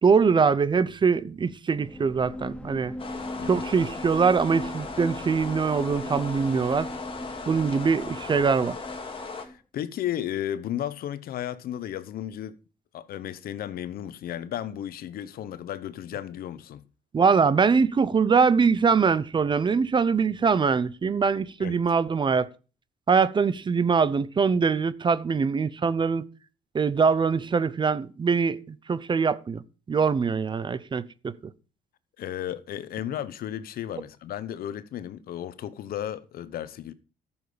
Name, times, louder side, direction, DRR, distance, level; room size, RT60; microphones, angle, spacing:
voice 1, 0.0-2.9 3.5-6.9 7.5-8.8 17.1-22.5 23.1-26.2 26.7-29.6 29.9-31.3, right 5 dB, 30° right, 0.7 m, -23 dB
sound 1, 1.7-9.6, left 1 dB, 5° left, 0.7 m, -39 dB
sound 2, 3.0-9.5, left 4 dB, 30° left, 2.5 m, -38 dB
voice 2, 9.2-12.6 12.9-16.8 21.6-21.8 32.2-36.9, left 11 dB, 60° left, 0.9 m, -34 dB
13.5 x 7.2 x 5.1 m
cardioid pair, 110°, 17 cm